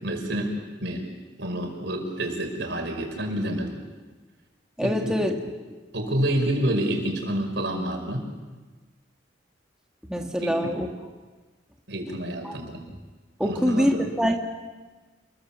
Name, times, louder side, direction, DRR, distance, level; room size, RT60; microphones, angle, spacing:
voice 1, 0.0-1.0 1.4-3.8 4.8-5.3 5.9-8.3 10.4-10.6 11.9-12.8 13.4-14.1, right 1 dB, 70° right, 3 dB, 5.6 m, -28 dB
voice 2, 4.8-5.3 10.1-10.9 12.4-12.5 13.4-14.4, equal, 5° right, 1 dB, 1.7 m, -24 dB
29.5 x 22.5 x 7.4 m, 1.3 s
head